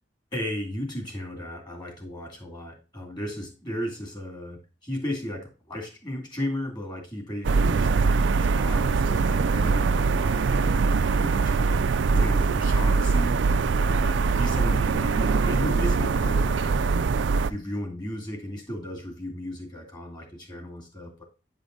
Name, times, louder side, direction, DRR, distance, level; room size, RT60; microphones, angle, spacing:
voice 1, 0.3-11.8 12.1-13.4 13.8-17.0 17.4-21.2, equal, 25° left, 2 dB, 2.9 m, -35 dB
sound 1, 7.4-17.5, right 4 dB, 90° right, 0.4 m, -22 dB
9.5 x 5.0 x 4.0 m, 0.32 s
head